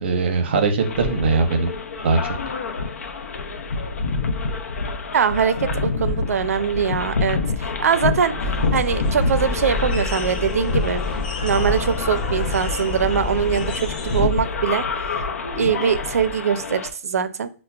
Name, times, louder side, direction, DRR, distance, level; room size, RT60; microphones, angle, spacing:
voice 1, 0.0-1.7 2.0-2.4, right 4 dB, 45° right, 6 dB, 0.7 m, -20 dB
sound 1, 0.8-16.9, left 3 dB, 80° left, 0.6 m, -27 dB
voice 2, 5.1-11.0 11.4-14.8 15.5-17.5, right 7 dB, 85° right, 12 dB, 0.4 m, -22 dB
sound 2, 8.4-14.3, left 3 dB, 35° left, 0.7 m, -29 dB
5.5 x 2.1 x 2.3 m, 0.38 s
hypercardioid pair, 170°, 8 cm